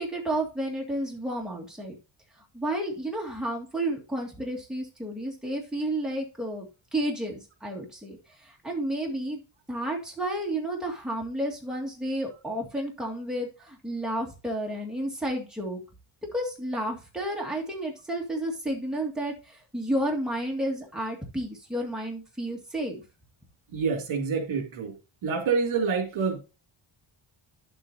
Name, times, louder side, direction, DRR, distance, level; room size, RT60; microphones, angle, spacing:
voice 1, 0.0-2.0 2.5-8.2 8.4-9.4 9.7-15.8 16.3-23.0, right 1 dB, ahead, -1 dB, 2.0 m, -31 dB
voice 2, 23.7-24.9 25.2-26.4, right 5 dB, 70° right, 4 dB, 2.7 m, -27 dB
10.5 x 7.8 x 2.7 m, 0.32 s
wide cardioid pair, 170°, 50 cm